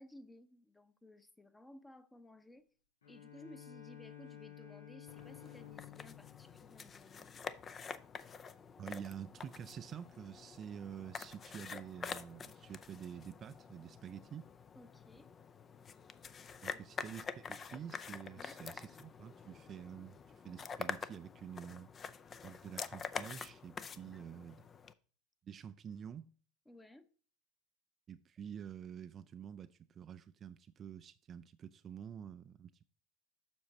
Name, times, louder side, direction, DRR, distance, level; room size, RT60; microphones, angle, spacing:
voice 1, 0.0-2.6 3.1-7.6 14.7-15.3 16.7-17.2 18.3-18.6 24.1-24.5 26.7-27.1, left 1 dB, 10° left, 0.9 m, -58 dB
Bowed string instrument, 3.0-7.6, left 11 dB, 90° left, 1.3 m, -54 dB
sound 1, 5.1-24.9, left 6 dB, 30° left, 0.5 m, -47 dB
voice 2, 8.8-14.5 16.6-21.9 22.4-24.7 25.4-26.3 28.1-32.9, right 8 dB, 35° right, 0.4 m, -48 dB
7.1 x 6.1 x 4.1 m
hypercardioid pair, 90°, 0 cm